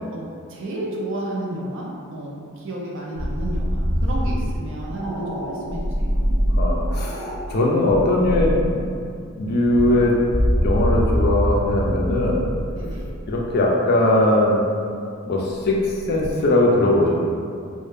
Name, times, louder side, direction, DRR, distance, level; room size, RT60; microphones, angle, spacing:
voice 1, 0.1-1.9 2.1-5.8 12.8-13.1, right 1 dB, 60° right, -4 dB, 0.5 m, -31 dB
sound 1, 3.2-7.4 7.9-8.7 9.4-13.6 15.8-16.3, equal, 90° right, 0.9 m, -24 dB
voice 2, 6.6-7.2 7.5-8.8 9.4-10.1 10.6-12.5 13.3-14.6 15.3-15.8 16.1-17.1, left 1 dB, 50° left, -2 dB, 0.4 m, -19 dB
2.2 x 2.0 x 3.0 m, 2.3 s
head